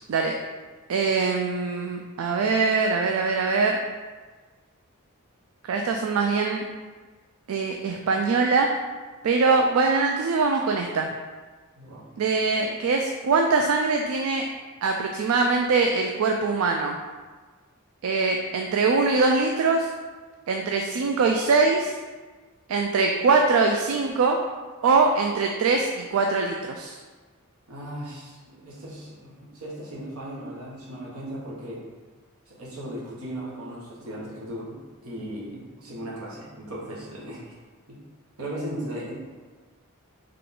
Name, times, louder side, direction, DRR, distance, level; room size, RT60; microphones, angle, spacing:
voice 1, 0.9-3.8 5.6-6.7 7.5-8.7 9.2-11.1 12.2-14.5 14.8-16.9 18.0-19.9 20.5-22.0 22.7-24.4 24.8-27.0, right 4 dB, 70° right, 2 dB, 0.4 m, -22 dB
voice 2, 27.7-31.8 32.5-37.5 37.9-38.0 38.4-39.1, right 1 dB, 85° right, -6 dB, 1.3 m, -37 dB
3.7 x 3.3 x 3.7 m, 1.4 s
head